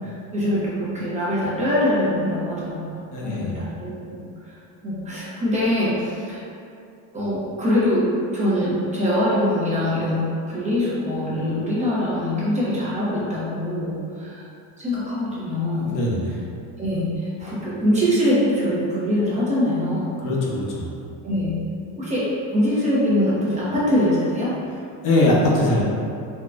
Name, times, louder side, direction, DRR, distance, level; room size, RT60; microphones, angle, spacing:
voice 1, 0.0-4.3 4.8-6.4 7.1-14.4 14.8-15.9 16.8-20.1 21.2-21.6 22.0-22.3 22.5-24.5, left 1 dB, 20° right, -9 dB, 0.8 m, -23 dB
voice 2, 3.1-3.6 15.8-16.4 20.2-20.9 25.0-25.8, left 1 dB, 50° left, -4 dB, 0.7 m, -21 dB
3.7 x 2.2 x 2.5 m, 2.5 s
supercardioid pair, 120°, 39 cm